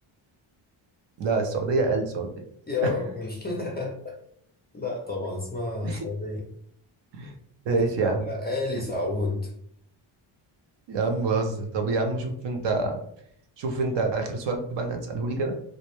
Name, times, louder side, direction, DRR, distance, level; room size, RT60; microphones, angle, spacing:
voice 1, 1.2-2.3 2.8-2.9 5.8-6.1 7.1-7.3 7.7-8.2 10.9-13.0 13.6-15.6, right 3 dB, 60° right, 4 dB, 0.6 m, -26 dB
voice 2, 2.7-4.2 4.7-6.5 7.7-9.5, left 3 dB, 20° left, -1 dB, 0.4 m, -30 dB
2.1 x 2.1 x 2.9 m, 0.68 s
cardioid pair, 125°, 50 cm